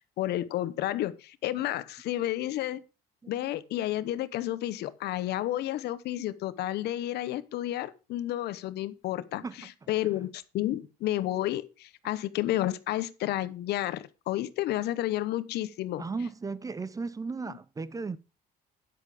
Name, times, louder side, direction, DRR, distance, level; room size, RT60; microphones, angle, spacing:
voice 1, 0.2-2.8 3.3-16.0, left 14 dB, 75° left, 0.9 m, -31 dB
voice 2, 9.4-10.1 16.0-18.2, right 4 dB, 20° right, 0.6 m, -36 dB
9.8 x 8.4 x 4.9 m
cardioid pair, 110°, 17 cm